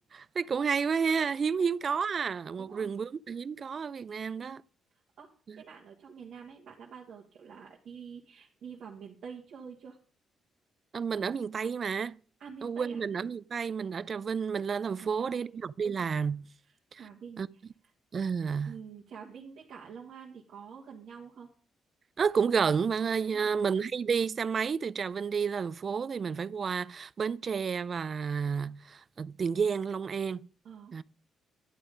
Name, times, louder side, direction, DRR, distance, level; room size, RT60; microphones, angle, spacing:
voice 1, 0.1-4.6 5.5-5.6 10.9-12.2 12.6-16.5 16.9-17.1 17.4-17.5 18.1-18.7 22.2-30.5 30.9-31.0, right 6 dB, 45° right, 0.4 m, -31 dB
voice 2, 2.6-2.9 4.3-4.6 5.2-5.3 5.6-10.0 12.4-13.0 15.0-15.5 17.0-17.4 18.7-21.5 23.3-23.7 30.6-30.9, right 6 dB, 65° right, 1.6 m, -47 dB
11.0 x 7.4 x 5.1 m
cardioid pair, 90°, 0 cm